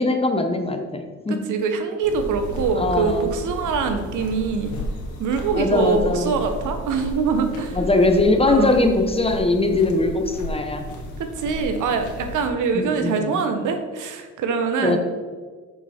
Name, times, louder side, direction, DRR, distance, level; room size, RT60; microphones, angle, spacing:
voice 1, 0.0-1.4 2.8-3.3 5.5-6.4 7.7-10.8 12.7-13.4 14.8-15.0, left 2 dB, 20° left, 5 dB, 1.0 m, -21 dB
voice 2, 1.3-4.8 5.2-7.8 8.4-8.8 11.2-15.0, right 5 dB, 80° right, 7 dB, 1.1 m, -24 dB
sound 1, 2.0-12.5, left 1 dB, 80° left, 1.9 m, -33 dB
6.9 x 6.7 x 4.5 m, 1.5 s
cardioid pair, 90°, 30 cm